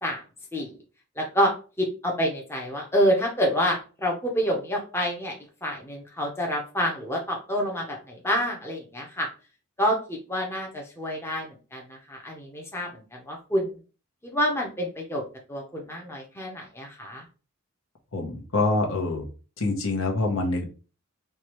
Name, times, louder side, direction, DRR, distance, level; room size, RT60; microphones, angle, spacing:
voice 1, 1.2-5.3 5.6-9.3 9.8-13.8 14.2-15.2 15.5-17.2, equal, 10° left, -1 dB, 0.7 m, -28 dB
voice 2, 18.1-19.3 19.6-20.7, left 2 dB, 65° left, 2 dB, 0.9 m, -25 dB
4.6 x 2.3 x 3.0 m, 0.34 s
head